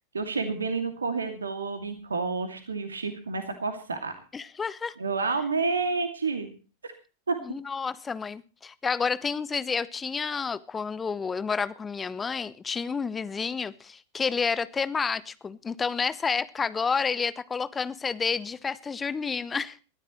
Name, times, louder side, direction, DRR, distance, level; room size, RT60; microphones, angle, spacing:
voice 1, 0.1-4.1 5.0-6.5 6.8-6.9 7.3-7.4, right 4 dB, 75° right, 2.4 m, -29 dB
voice 2, 4.3-4.9 7.4-19.8, left 5 dB, 15° left, 1.0 m, -30 dB
22.5 x 14.0 x 3.1 m
figure-of-eight pair, 90°, 0 cm